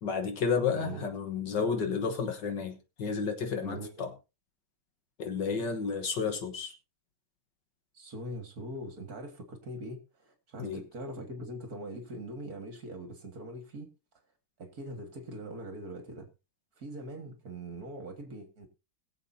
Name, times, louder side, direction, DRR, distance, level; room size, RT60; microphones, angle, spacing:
voice 1, 0.0-4.1 5.2-6.7 10.6-10.8, left 5 dB, 60° left, 1.7 m, -31 dB
voice 2, 0.7-1.1 3.6-4.1 7.9-13.9 14.6-16.3 16.8-18.7, right 1 dB, 45° right, 2.1 m, -42 dB
22.0 x 7.3 x 2.7 m
omnidirectional pair, 2.3 m